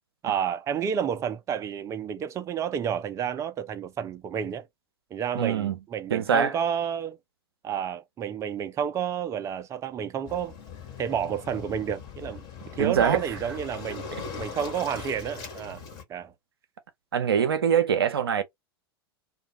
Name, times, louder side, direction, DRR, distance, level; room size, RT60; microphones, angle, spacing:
voice 1, 0.2-4.7 5.1-7.2 7.6-10.6 11.0-12.4 12.8-14.1 14.4-15.8 16.1-16.3, right 8 dB, 25° right, 0.5 m, -30 dB
voice 2, 5.3-5.8 6.1-6.5 12.8-13.2 14.1-14.2 17.1-18.4, right 7 dB, 70° right, 0.5 m, -23 dB
Waves surf, 10.2-16.0, left 5 dB, 45° left, 1.2 m, -40 dB
2.3 x 2.3 x 2.8 m
figure-of-eight pair, 90°, 13 cm